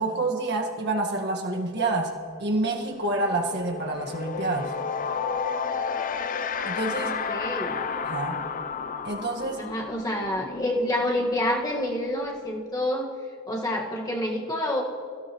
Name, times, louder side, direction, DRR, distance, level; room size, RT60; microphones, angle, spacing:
voice 1, 0.0-4.7 6.6-7.1 8.0-8.4 9.0-9.6, right 2 dB, 50° right, 1 dB, 1.6 m, -28 dB
sound 1, 1.9-2.0 2.3-12.9, left 6 dB, 40° left, 0.5 m, -33 dB
voice 2, 6.9-7.9 9.6-13.1 13.5-14.8, left 1 dB, 15° left, -1 dB, 1.6 m, -28 dB
27.5 x 16.5 x 3.1 m, 2.4 s
head